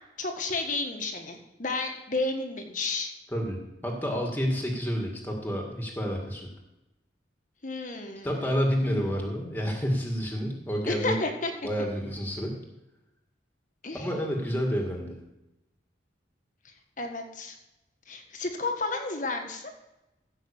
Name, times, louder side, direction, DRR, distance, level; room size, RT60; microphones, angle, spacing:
voice 1, 0.2-3.1 7.6-8.4 10.9-11.5 13.8-14.1 17.0-17.5 18.1-19.6, left 3 dB, 45° left, 4 dB, 1.5 m, -31 dB
voice 2, 3.3-6.5 8.2-11.2 11.6-12.6 13.9-15.2, equal, 10° left, 1 dB, 1.9 m, -29 dB
15.5 x 5.8 x 7.1 m, 0.94 s
head